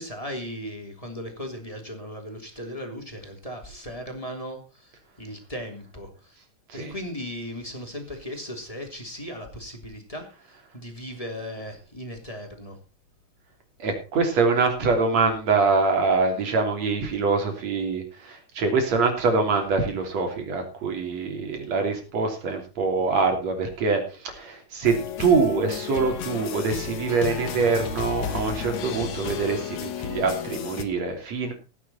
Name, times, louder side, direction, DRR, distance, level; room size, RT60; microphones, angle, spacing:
voice 1, 0.0-6.4 6.7-10.2 10.7-12.8, equal, 10° left, 3 dB, 3.0 m, -37 dB
voice 2, 13.8-31.5, right 4 dB, 60° right, 4 dB, 4.3 m, -24 dB
sound 1, 24.8-30.8, left 9 dB, 70° left, 2.6 m, -33 dB
16.5 x 10.0 x 4.3 m, 0.32 s
omnidirectional pair, 3.5 m